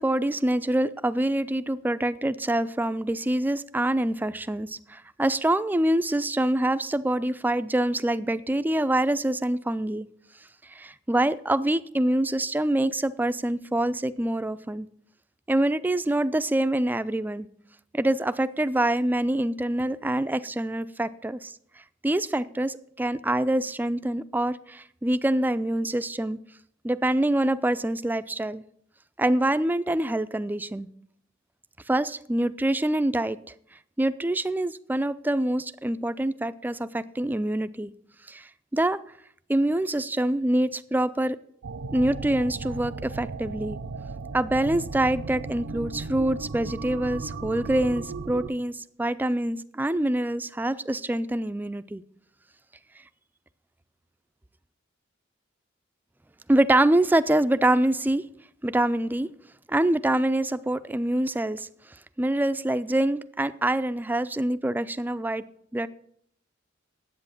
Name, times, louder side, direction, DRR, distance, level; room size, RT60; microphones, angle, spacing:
voice 1, 0.0-10.1 10.6-14.9 15.5-17.5 17.9-21.5 22.0-26.4 26.8-28.6 29.2-30.9 31.9-33.5 34.0-37.9 38.3-39.0 39.5-41.4 41.9-43.8 44.3-52.0 56.5-58.3 58.6-59.3 59.7-61.7 62.2-65.4 65.7-65.9, right 1 dB, 10° right, 0.3 m, -25 dB
sound 1, 41.6-48.5, right 4 dB, 70° right, 0.6 m, -36 dB
9.7 x 8.2 x 7.1 m
head